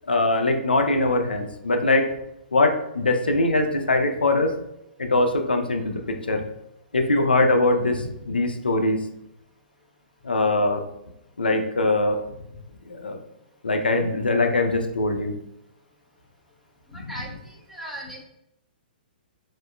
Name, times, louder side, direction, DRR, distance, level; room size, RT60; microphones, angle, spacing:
voice 1, 0.1-2.1 2.5-4.5 5.0-6.0 6.3-6.4 6.9-9.0 10.2-10.8 11.4-12.2 12.9-13.2 13.6-15.3, left 2 dB, 75° left, 4 dB, 0.4 m, -22 dB
voice 2, 16.9-18.2, right 1 dB, 5° right, -4 dB, 0.5 m, -38 dB
3.4 x 2.1 x 2.2 m, 0.80 s
figure-of-eight pair, 115°, 5 cm